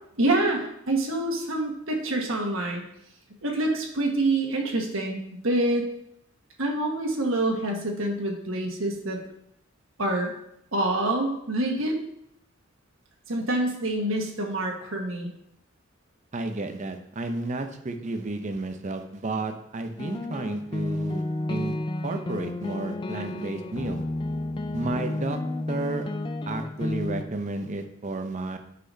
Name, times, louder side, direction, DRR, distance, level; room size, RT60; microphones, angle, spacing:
voice 1, 0.2-2.8 3.4-5.2 5.4-5.8 6.6-9.2 10.0-10.3 10.7-12.0 13.3-15.3, right 2 dB, 80° right, 1 dB, 1.5 m, -26 dB
voice 2, 16.3-21.7 22.0-24.0 24.7-25.4 25.7-26.1 26.5-28.6, right 2 dB, 35° right, 6 dB, 0.6 m, -32 dB
sound 1, 20.0-27.2, left 2 dB, 25° left, 0.3 m, -31 dB
9.6 x 5.7 x 2.7 m, 0.74 s
head